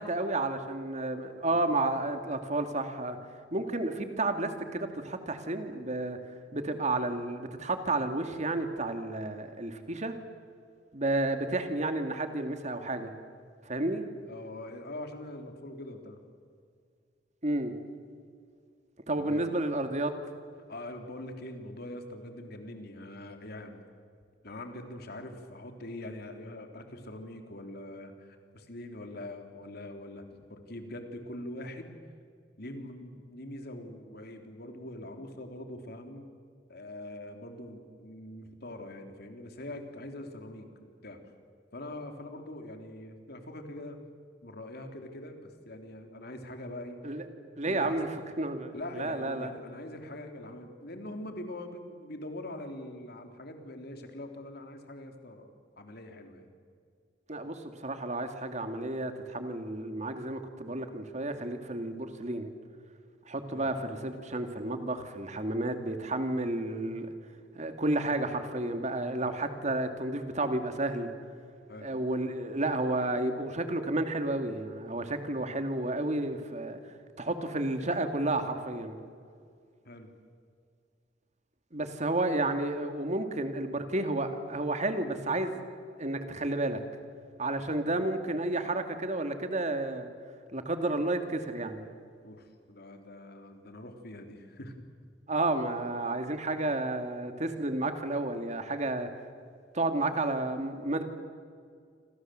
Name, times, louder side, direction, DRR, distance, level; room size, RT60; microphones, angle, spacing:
voice 1, 0.0-3.2 3.5-6.2 6.5-10.1 10.9-13.1 13.7-14.1 17.4-17.7 19.1-20.1 47.0-47.2 47.6-49.5 57.3-62.5 63.3-67.1 67.5-71.1 71.8-79.0 81.7-85.6 86.0-86.8 87.4-90.1 90.5-91.9 95.3-99.1 99.7-101.0, right 2 dB, 40° right, 7 dB, 2.5 m, -31 dB
voice 2, 14.3-16.2 19.2-19.6 20.7-23.8 24.4-30.2 30.5-31.9 32.6-36.3 36.7-41.2 41.7-44.0 44.4-47.0 47.7-48.0 48.7-56.5 63.5-63.8 69.0-69.3 71.7-71.9 79.9-80.1 92.2-94.8, left 1 dB, 55° left, 5 dB, 3.4 m, -43 dB
28.5 x 26.0 x 7.8 m, 2.2 s
head